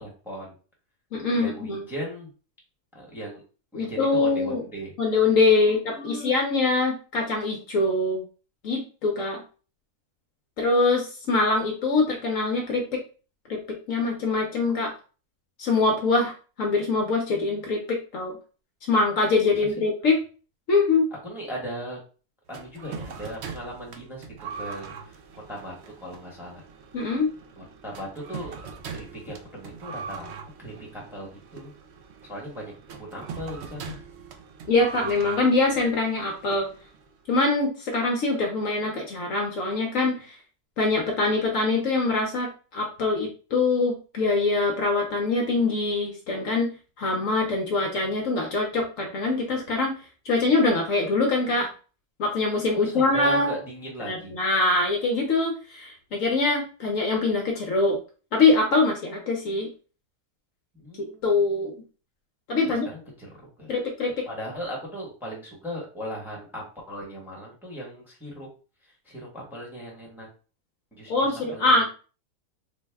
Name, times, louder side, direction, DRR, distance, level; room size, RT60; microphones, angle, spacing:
voice 1, 0.0-0.5 1.3-2.3 2.9-3.4 3.7-4.9 5.7-6.3 21.2-22.0 22.5-25.1 25.5-26.6 27.6-28.6 28.9-30.3 30.6-31.7 32.2-34.0 52.7-54.3 60.7-61.3 62.6-63.3 63.6-63.7 64.2-68.5 69.0-70.3 70.9-71.7, equal, ahead, -3 dB, 1.0 m, -37 dB
voice 2, 1.1-1.8 3.7-4.6 5.0-8.2 8.6-9.4 10.6-13.0 13.5-14.9 15.6-18.4 18.9-20.2 20.7-21.1 26.9-27.3 34.7-36.7 37.3-40.4 40.8-50.0 50.2-51.7 52.2-53.5 54.0-58.0 58.3-59.7 61.2-61.7 62.5-62.9 63.7-64.2 71.1-71.8, left 3 dB, 65° left, 1 dB, 1.0 m, -24 dB
sound 1, 22.5-37.2, right 5 dB, 75° right, 0.6 m, -41 dB
4.0 x 2.1 x 3.4 m, 0.37 s
omnidirectional pair, 1.7 m